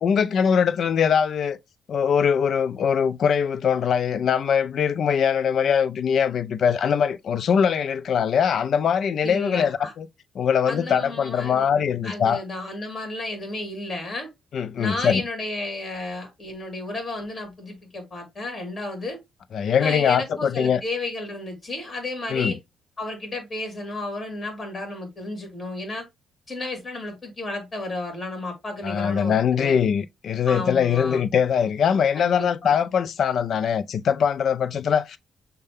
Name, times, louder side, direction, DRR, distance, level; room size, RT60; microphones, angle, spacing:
voice 1, 0.0-1.6 1.9-10.1 10.4-12.4 14.5-15.2 19.5-20.8 22.3-22.5 28.8-35.2, left 7 dB, 60° left, 0.4 m, -22 dB
voice 2, 9.2-9.9 10.7-11.7 12.0-14.3 14.8-19.2 19.8-22.6 23.0-26.0 26.5-29.8 30.5-31.2 32.2-32.7, left 2 dB, 30° left, 2.0 m, -32 dB
6.5 x 2.2 x 3.5 m
cardioid pair, 90°, 0 cm